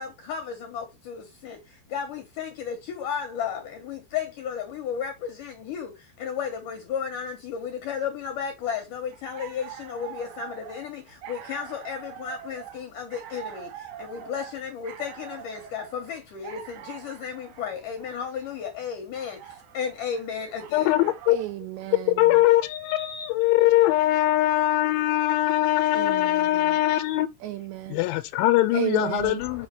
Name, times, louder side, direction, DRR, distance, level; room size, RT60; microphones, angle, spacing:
voice 1, 0.0-20.9 29.2-29.7, left 7 dB, 70° left, 2.0 m, -34 dB
sound 1, 9.1-21.6, right 10 dB, 65° right, 3.0 m, -44 dB
voice 2, 20.7-21.4 22.1-27.3 27.9-29.7, left 15 dB, 85° left, 3.0 m, -22 dB
voice 3, 21.3-22.2 25.9-26.3 27.4-28.0 28.7-29.4, right 14 dB, 85° right, 2.5 m, -32 dB
6.3 x 6.0 x 3.2 m
omnidirectional pair, 5.5 m